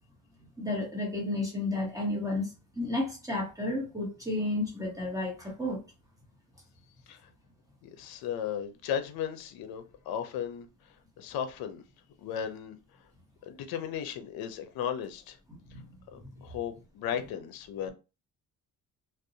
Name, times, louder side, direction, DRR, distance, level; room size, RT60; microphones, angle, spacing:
voice 1, 0.6-5.8 15.5-15.9 16.1-16.3, left 2 dB, 10° right, 0.8 m, -32 dB
voice 2, 8.0-10.7 11.2-11.8 12.2-12.8 13.5-15.4 16.1-17.9, left 8 dB, 75° left, 0.6 m, -35 dB
2.6 x 2.0 x 2.6 m
cardioid pair, 120°, 36 cm